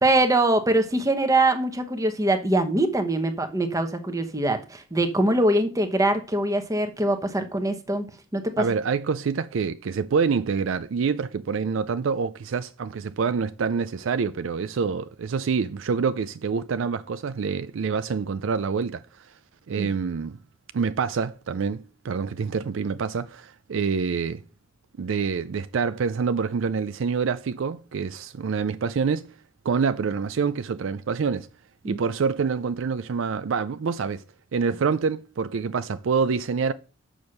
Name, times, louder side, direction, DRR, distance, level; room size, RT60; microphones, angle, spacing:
voice 1, 0.0-8.1 8.3-8.6 19.8-19.9 31.8-32.0, right 1 dB, 15° right, 1.0 m, -23 dB
voice 2, 8.6-19.0 19.7-20.4 20.7-24.4 25.0-29.3 29.6-31.5 31.8-34.2 34.5-36.7, right 5 dB, 65° right, 0.4 m, -26 dB
7.1 x 6.3 x 6.4 m
head